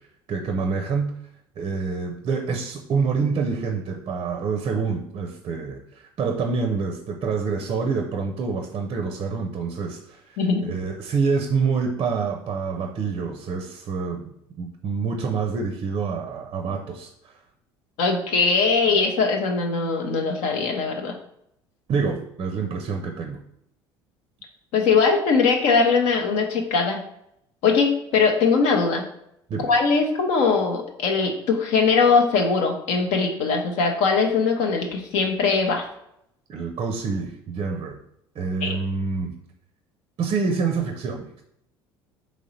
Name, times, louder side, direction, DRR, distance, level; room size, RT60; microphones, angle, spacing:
voice 1, 0.3-1.1 1.6-17.3 21.9-23.4 29.5-29.7 36.5-38.0 38.4-39.3 40.2-41.4, right 5 dB, 40° right, 3 dB, 0.5 m, -27 dB
voice 2, 10.4-10.7 18.0-21.1 24.7-27.0 27.6-29.0 29.7-35.8 38.6-38.8, left 4 dB, 60° left, 2 dB, 0.7 m, -21 dB
3.7 x 3.1 x 4.0 m, 0.76 s
figure-of-eight pair, 60°, 13 cm